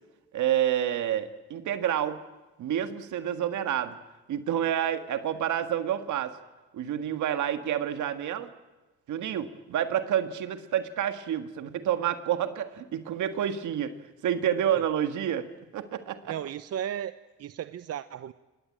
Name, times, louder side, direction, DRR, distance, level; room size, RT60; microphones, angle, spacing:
voice 1, 0.3-2.2 2.6-4.0 4.3-6.4 6.7-8.5 9.1-13.9 14.2-16.3, right 10 dB, 75° right, 9 dB, 1.8 m, -29 dB
voice 2, 16.3-17.1 17.4-18.3, right 10 dB, 55° right, 13 dB, 0.8 m, -34 dB
27.0 x 20.5 x 8.7 m, 1.2 s
cardioid pair, 90°, 30 cm